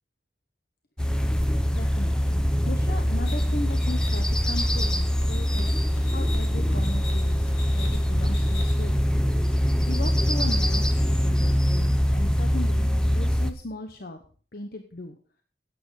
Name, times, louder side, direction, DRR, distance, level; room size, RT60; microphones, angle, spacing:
sound 1, 1.0-13.5, equal, 5° left, 0.8 m, -23 dB
voice 1, 1.7-9.1 9.9-14.2 14.5-15.2, left 2 dB, 55° left, 6 dB, 1.0 m, -37 dB
sound 2, 3.2-9.0, left 2 dB, 80° left, 3.0 m, -41 dB
11.5 x 8.9 x 4.8 m, 0.42 s
head